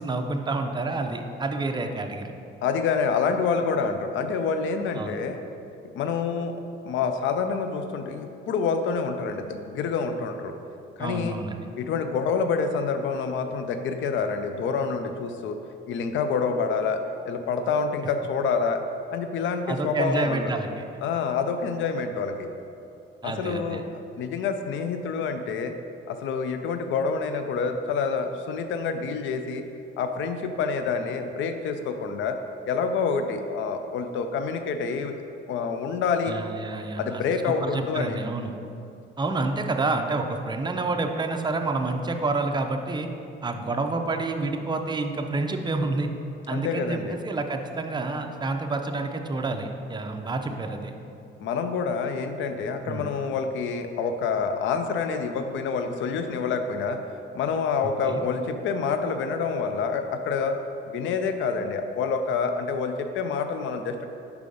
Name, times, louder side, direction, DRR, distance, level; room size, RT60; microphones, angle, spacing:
voice 1, 0.0-2.3 5.0-5.2 11.0-11.6 19.7-20.8 23.2-23.8 36.3-38.5 39.2-43.1 43.4-46.1 46.5-51.0 52.9-53.1 58.1-58.2, right 3 dB, 20° right, 5 dB, 0.5 m, -29 dB
voice 2, 2.6-5.4 5.9-6.6 6.8-10.5 11.0-11.4 11.8-15.6 15.9-18.8 19.1-20.5 21.0-22.5 23.2-25.7 26.1-29.7 30.0-32.4 32.6-35.2 35.5-36.4 37.0-38.2 46.5-47.2 51.4-57.0 57.3-60.6 60.9-64.1, left 5 dB, 75° left, 7 dB, 0.5 m, -27 dB
5.0 x 4.7 x 5.3 m, 2.6 s
cardioid pair, 90°, 20 cm